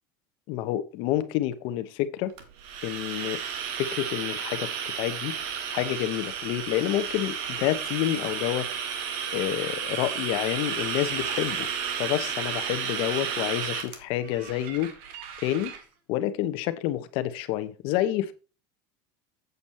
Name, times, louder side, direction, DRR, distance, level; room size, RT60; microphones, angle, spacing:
voice 1, 0.5-2.3 2.8-3.4 3.8-5.3 5.7-8.7 9.3-11.7 12.0-14.9 15.4-15.7 16.1-18.3, left 13 dB, 60° left, 1.0 m, -28 dB
sound 1, 2.4-15.8, right 7 dB, 65° right, 2.0 m, -33 dB
8.2 x 7.3 x 4.4 m
cardioid pair, 155°, 10 cm